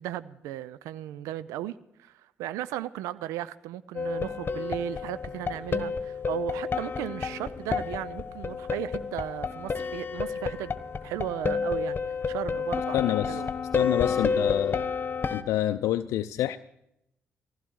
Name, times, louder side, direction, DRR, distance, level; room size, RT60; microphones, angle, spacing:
voice 1, 0.0-13.5, right 13 dB, 75° right, 17 dB, 0.5 m, -36 dB
sound 1, 3.9-15.4, left 5 dB, 40° left, 1.2 m, -30 dB
voice 2, 12.9-13.4 13.7-14.8 15.3-16.6, left 13 dB, 70° left, 9 dB, 0.5 m, -27 dB
19.5 x 15.5 x 4.6 m, 0.79 s
hypercardioid pair, 45°, 5 cm